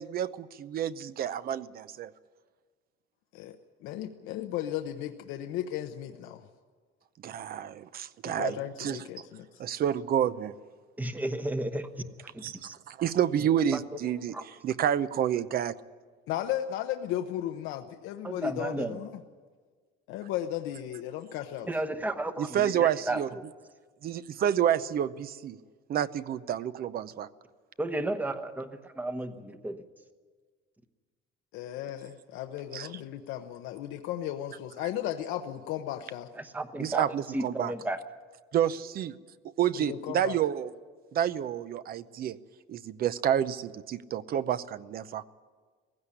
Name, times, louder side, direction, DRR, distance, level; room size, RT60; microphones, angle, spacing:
voice 1, 0.0-2.1 7.2-9.0 9.6-10.5 12.4-15.7 22.4-23.3 24.0-25.6 25.9-27.3 32.7-32.9 36.8-37.7 38.5-39.1 39.6-40.7 41.1-42.4 42.7-45.2, right 10 dB, 50° right, 14 dB, 0.7 m, -29 dB
voice 2, 3.8-6.4 8.2-9.4 14.0-14.1 16.3-19.1 20.1-21.7 29.2-29.3 31.5-36.3 39.8-40.4, left 12 dB, 90° left, 6 dB, 0.9 m, -35 dB
voice 3, 11.0-11.9 12.2-12.7 13.7-13.8 14.3-14.4 18.2-19.0 21.7-23.4 27.8-29.8 36.4-37.0 37.3-38.0, right 1 dB, 10° right, 8 dB, 1.0 m, -33 dB
17.5 x 16.0 x 9.9 m, 1.5 s
cardioid pair, 135°, 20 cm